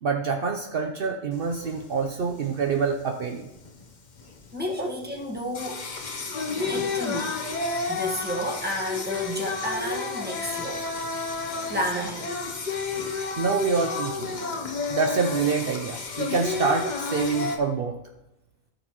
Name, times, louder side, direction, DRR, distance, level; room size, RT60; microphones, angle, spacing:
voice 1, 0.0-3.4 4.8-4.9 13.4-14.3 14.9-18.0, right 5 dB, 60° right, 3 dB, 0.8 m, -26 dB
Singing, 1.3-17.6, left 4 dB, 45° left, 1.0 m, -31 dB
voice 2, 4.5-5.8 6.5-7.4 7.9-10.8 11.7-12.3, equal, 10° right, -2 dB, 1.4 m, -31 dB
15.5 x 6.5 x 3.0 m, 0.95 s
omnidirectional pair, 1.1 m